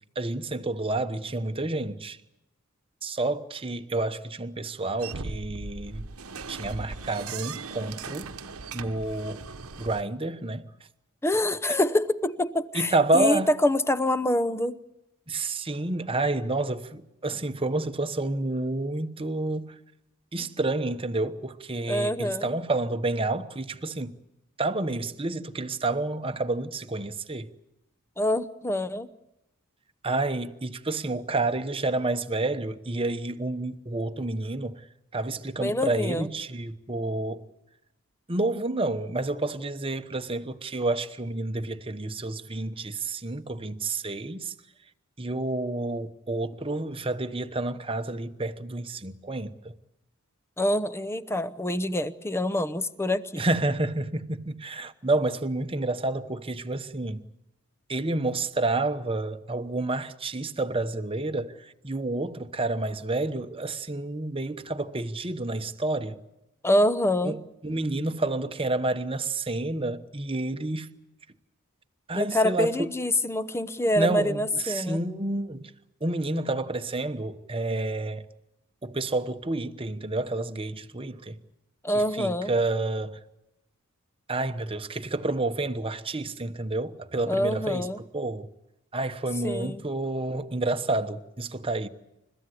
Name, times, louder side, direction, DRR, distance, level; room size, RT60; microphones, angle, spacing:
voice 1, 0.1-2.2 3.0-6.1 6.5-8.3 8.7-9.4 9.8-10.7 12.7-13.5 15.3-19.8 20.3-24.2 24.6-27.5 30.0-34.9 35.1-37.4 38.3-44.5 45.2-49.8 53.4-57.2 57.9-66.2 67.2-70.9 72.1-72.9 74.0-75.7 76.0-78.3 78.8-81.4 81.9-83.2 84.3-88.5 88.9-91.9, right 2 dB, 25° right, 1.1 m, -29 dB
sound 1, 5.0-10.0, right 4 dB, 80° right, 1.2 m, -39 dB
voice 2, 11.2-14.8 21.9-22.5 28.2-29.1 35.6-36.3 50.6-53.5 66.6-67.4 72.1-75.0 81.8-82.5 87.3-88.0 89.4-89.8, left 1 dB, 10° left, 0.8 m, -26 dB
29.5 x 14.5 x 10.0 m
head